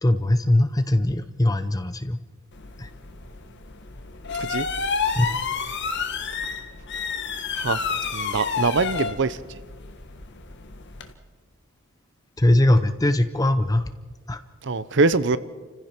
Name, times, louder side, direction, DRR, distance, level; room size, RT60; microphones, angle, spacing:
voice 1, 0.0-2.2 2.8-2.9 5.2-5.3 12.4-13.9 14.3-14.4, left 1 dB, 15° left, 11 dB, 0.6 m, -21 dB
sound 1, 2.5-11.1, left 5 dB, 55° left, 1.6 m, -30 dB
voice 2, 8.1-9.4 14.7-15.4, right 3 dB, 55° right, 15 dB, 0.8 m, -23 dB
29.0 x 15.5 x 6.0 m, 1.4 s
head